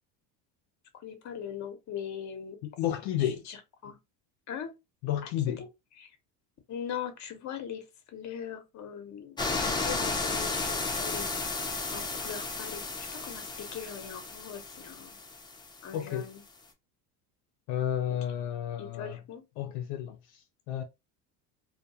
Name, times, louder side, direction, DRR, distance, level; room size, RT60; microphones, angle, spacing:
voice 1, 1.0-2.6 3.2-3.6 3.8-4.0 4.5-4.7 5.2-5.7 6.0-6.1 6.7-11.3 11.9-12.8 13.1-15.1 15.8-16.4 18.8-19.4, left 8 dB, 40° left, 0.8 m, -40 dB
voice 2, 2.8-3.4 5.0-5.6 15.9-16.2 17.7-19.2 19.6-20.8, left 11 dB, 70° left, 0.5 m, -31 dB
sound 1, 9.4-16.0 16.2-16.3, left 3 dB, 10° left, 0.4 m, -33 dB
2.3 x 2.2 x 2.7 m
supercardioid pair, 105°, 45 cm